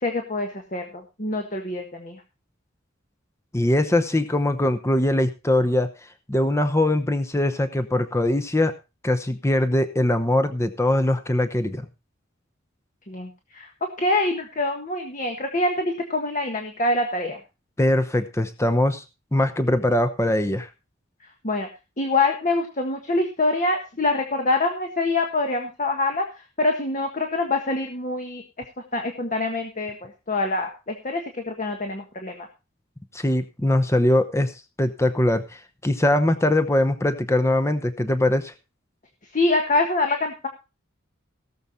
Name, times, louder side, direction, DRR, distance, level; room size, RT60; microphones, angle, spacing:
voice 1, 0.0-2.2 13.1-17.4 21.4-21.7 22.0-28.4 28.9-32.5 39.3-40.5, left 2 dB, 40° left, 4 dB, 1.6 m, -25 dB
voice 2, 3.5-5.9 6.3-8.7 9.0-11.8 17.8-19.0 19.3-20.7 33.1-34.5 34.8-38.5, left 1 dB, 15° left, 10 dB, 0.9 m, -22 dB
17.5 x 7.1 x 4.2 m, 0.28 s
head